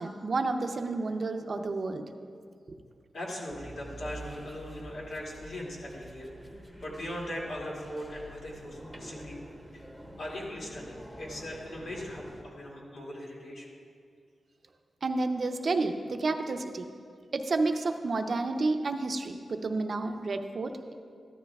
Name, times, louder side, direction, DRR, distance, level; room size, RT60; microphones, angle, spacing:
voice 1, 0.0-2.0 2.7-2.8 15.0-16.9 17.3-20.9, right 3 dB, 50° right, 7 dB, 0.6 m, -30 dB
voice 2, 3.1-6.5 6.8-9.4 9.7-9.8 10.2-13.7, left 1 dB, 80° left, -4 dB, 2.4 m, -39 dB
sound 1, 3.5-12.4, equal, 10° left, 1.2 m, -47 dB
14.0 x 12.0 x 2.4 m, 2.2 s
wide cardioid pair, 100°, 0 cm